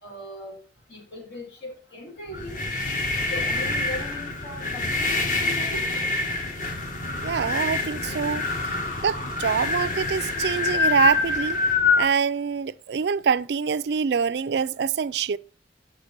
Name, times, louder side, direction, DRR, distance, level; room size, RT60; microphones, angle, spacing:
voice 1, 0.0-0.6 0.9-2.6 3.3-6.2, left 1 dB, 80° left, 4.9 m, -39 dB
sound 1, 2.3-12.1, left 3 dB, 45° left, 1.5 m, -26 dB
voice 2, 7.0-8.5 9.0-11.6 12.0-15.4, right 6 dB, 70° right, 0.4 m, -25 dB
6.6 x 6.5 x 6.5 m
head